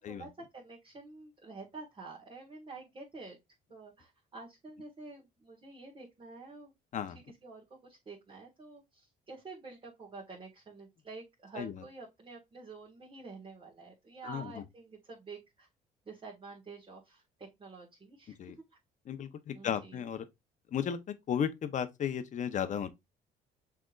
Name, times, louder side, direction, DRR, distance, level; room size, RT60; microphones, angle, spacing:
voice 1, 0.1-3.4 3.7-6.7 7.4-15.7 16.0-18.4 19.5-20.0, right 3 dB, 30° right, 1.7 m, -49 dB
voice 2, 14.2-14.6 18.4-18.5 19.1-20.2 20.7-21.0 21.3-22.9, left 8 dB, 45° left, 0.8 m, -34 dB
6.3 x 3.4 x 2.4 m
cardioid pair, 110°, 17 cm